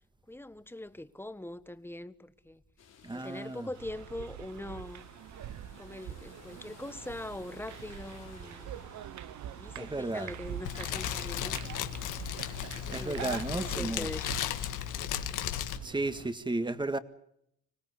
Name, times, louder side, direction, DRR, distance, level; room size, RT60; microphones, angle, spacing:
voice 1, 0.3-2.6 3.1-5.1 5.8-8.7 9.4-11.6 12.6-14.3, left 1 dB, 5° left, 1.4 m, -42 dB
sound 1, 2.8-16.3, left 6 dB, 55° left, 3.8 m, -55 dB
voice 2, 3.0-3.7 9.8-10.3 12.9-14.1 15.8-17.0, right 2 dB, 15° right, 1.9 m, -33 dB
sound 2, 3.7-16.3, right 11 dB, 70° right, 1.1 m, -44 dB
Fire, 10.6-15.8, left 12 dB, 90° left, 1.8 m, -35 dB
26.0 x 17.0 x 9.7 m
cardioid pair, 90°, 30 cm